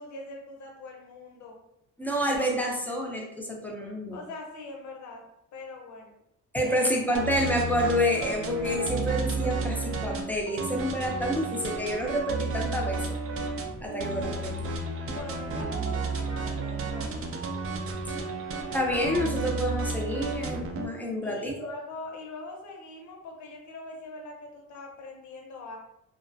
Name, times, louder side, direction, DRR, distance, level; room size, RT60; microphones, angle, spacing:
voice 1, 0.0-1.6 4.1-5.2 5.5-6.1 6.6-6.9 15.0-17.4 21.2-25.8, left 3 dB, 70° left, 1 dB, 0.7 m, -42 dB
voice 2, 2.0-4.2 6.5-13.0 13.8-14.7 18.7-21.7, equal, 5° left, -1 dB, 0.5 m, -28 dB
sound 1, 7.1-20.9, right 3 dB, 50° right, 0.5 m, -32 dB
2.3 x 2.1 x 2.6 m, 0.79 s
cardioid pair, 90°, 30 cm